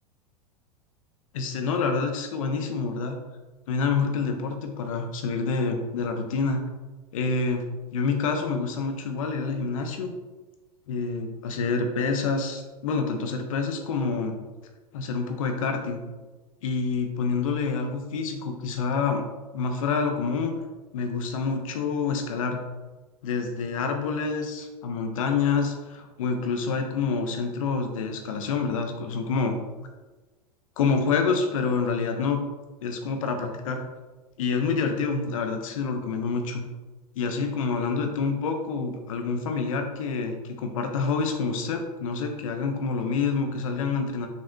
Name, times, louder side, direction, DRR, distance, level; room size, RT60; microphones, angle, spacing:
voice 1, 1.3-3.2 3.7-6.6 7.1-7.6 7.9-10.1 10.9-14.4 14.9-16.0 16.6-19.2 19.5-20.5 20.9-22.6 23.2-29.6 30.8-32.4 32.8-33.8 34.4-36.7 37.2-44.3, left 4 dB, 60° left, 4 dB, 0.7 m, -27 dB
6.4 x 3.2 x 2.3 m, 1.2 s
figure-of-eight pair, 85°, 20 cm